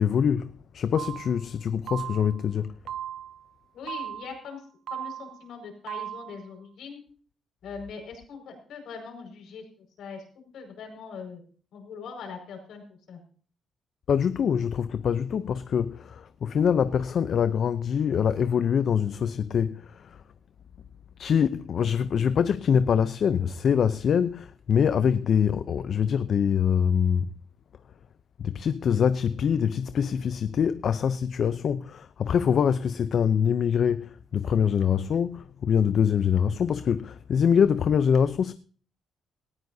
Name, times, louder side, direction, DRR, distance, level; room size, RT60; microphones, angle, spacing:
voice 1, 0.0-2.7 14.1-19.8 21.2-27.3 28.4-38.5, left 7 dB, 60° left, 0.6 m, -24 dB
sound 1, 0.9-1.4 1.9-2.4 2.9-3.4 3.9-4.4 4.9-5.4 5.9-6.4, right 10 dB, 75° right, 0.6 m, -37 dB
voice 2, 3.7-4.6 4.9-7.0 7.6-11.4 11.7-13.2, left 5 dB, 75° left, 5.4 m, -41 dB
19.0 x 14.5 x 2.7 m
cardioid pair, 90°, 0 cm